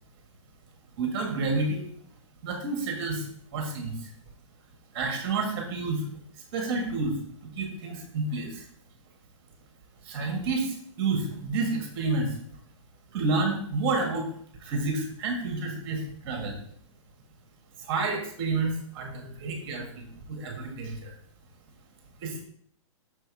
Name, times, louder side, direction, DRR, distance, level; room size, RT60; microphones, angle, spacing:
voice 1, 1.0-1.9 2.4-4.1 4.9-6.1 6.5-8.7 10.0-12.4 13.1-14.3 14.6-16.6 17.8-21.1 22.2-22.4, right 3 dB, 45° right, 2 dB, 1.9 m, -30 dB
6.4 x 3.5 x 4.8 m, 0.65 s
hypercardioid pair, 145°, 17 cm